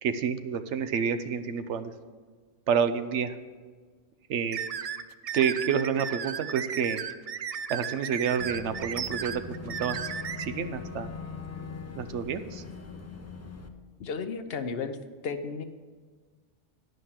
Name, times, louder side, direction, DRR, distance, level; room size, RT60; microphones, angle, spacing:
voice 1, 0.0-1.9 2.7-3.4 4.3-4.6 5.3-7.0 7.7-10.1 10.4-11.1 11.9-12.6, right 7 dB, 85° right, 10 dB, 1.0 m, -29 dB
sound 1, 4.5-10.4, right 7 dB, 65° right, 0.3 m, -35 dB
Boat Water vehicle / Engine, 8.4-13.7, left 5 dB, 20° left, 0.5 m, -41 dB
voice 2, 14.0-15.0 15.2-15.6, left 5 dB, 65° left, 9 dB, 0.9 m, -33 dB
11.0 x 5.4 x 7.3 m, 1.5 s
omnidirectional pair, 1.2 m